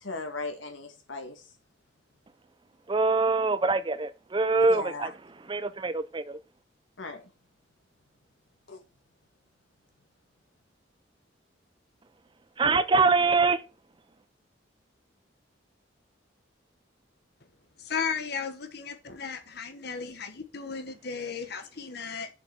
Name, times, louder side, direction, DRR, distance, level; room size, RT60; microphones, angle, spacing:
voice 1, 0.0-1.4 4.7-5.1 7.0-7.2 8.7-8.8, left 3 dB, 85° left, 2.0 m, -37 dB
voice 2, 2.9-5.1 5.5-6.4 12.6-13.6, right 3 dB, 25° right, 0.5 m, -24 dB
voice 3, 17.8-22.3, left 5 dB, 55° left, 1.2 m, -35 dB
7.2 x 5.7 x 5.9 m
head